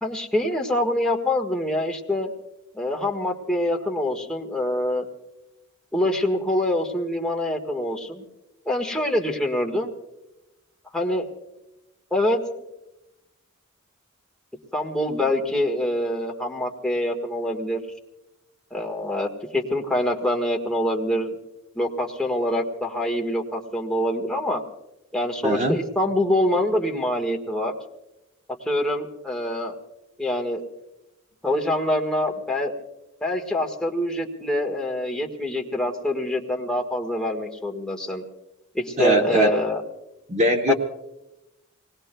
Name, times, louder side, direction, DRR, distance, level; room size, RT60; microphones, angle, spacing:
voice 1, 0.0-2.3 2.7-5.0 5.9-8.2 8.7-9.9 10.9-11.3 12.1-12.4 14.7-17.8 18.7-21.3 21.7-24.6 25.1-27.7 28.6-29.7 30.2-30.6 31.4-32.7 33.2-38.2 38.7-39.8 40.7-40.8, left 1 dB, 5° left, -1 dB, 1.5 m, -25 dB
voice 2, 25.4-25.8 39.0-39.5 40.3-40.7, right 2 dB, 30° right, 2 dB, 1.0 m, -20 dB
27.5 x 20.0 x 2.2 m, 0.93 s
head